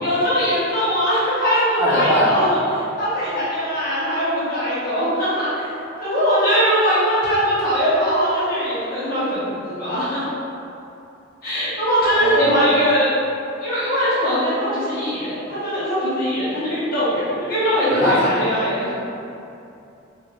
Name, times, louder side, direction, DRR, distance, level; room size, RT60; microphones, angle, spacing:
voice 1, 0.0-5.7 6.0-10.3 11.4-13.1 13.6-18.9, equal, 45° left, -11 dB, 1.0 m, -21 dB
voice 2, 1.8-2.3 12.1-12.6 17.9-18.3, equal, 15° right, -15 dB, 1.4 m, -20 dB
4.1 x 2.6 x 2.6 m, 2.7 s
head